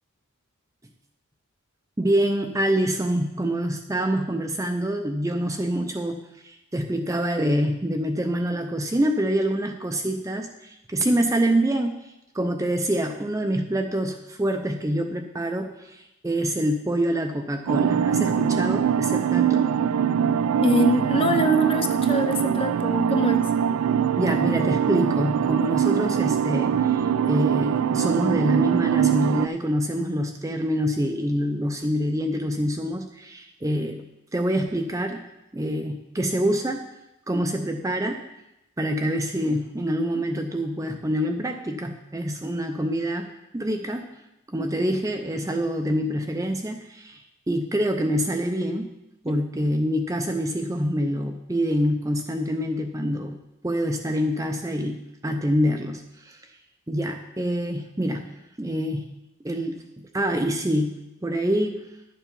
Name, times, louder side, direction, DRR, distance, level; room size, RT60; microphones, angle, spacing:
voice 1, 2.0-19.7 24.2-34.1 34.3-35.3 35.5-36.9 37.3-38.2 38.8-44.1 44.5-47.2 47.5-48.9 49.2-53.4 53.6-56.4 56.9-59.1 59.4-59.9 60.1-61.8, equal, 15° right, 4 dB, 0.5 m, -26 dB
sound 1, 17.7-29.5, right 8 dB, 80° right, 0.4 m, -22 dB
voice 2, 20.6-23.5 49.3-49.4, left 1 dB, 25° left, 6 dB, 0.7 m, -24 dB
10.5 x 7.2 x 5.3 m, 0.90 s
head